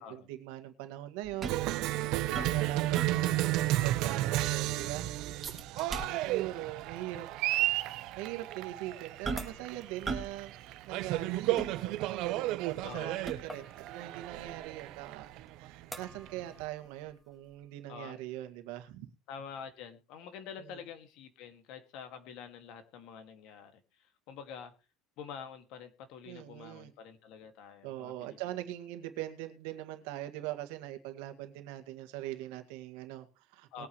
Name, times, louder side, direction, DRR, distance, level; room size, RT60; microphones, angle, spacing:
voice 1, 0.0-1.5 2.1-5.1 6.1-7.3 8.2-10.5 10.8-19.1 20.6-20.8 26.3-26.9 27.8-33.9, right 14 dB, 80° right, 1.9 m, -42 dB
sound 1, 1.2-3.5 3.9-4.0 4.4-4.8 5.4-6.5 6.8-7.0 7.7-7.8 9.2-9.7 10.0-10.4 10.7-12.3 12.8-13.7 14.3-17.1 17.5-17.6, right 4 dB, 15° right, 2.5 m, -41 dB
Cheering, 1.4-16.6, right 16 dB, 55° right, 0.8 m, -33 dB
sound 2, 9.4-17.9, right 1 dB, 5° left, 1.9 m, -54 dB
voice 2, 12.8-13.3 17.9-18.2 19.3-24.7 25.2-28.4 33.7-33.9, left 7 dB, 55° left, 2.2 m, -47 dB
21.0 x 8.8 x 3.2 m
cardioid pair, 170°, 0 cm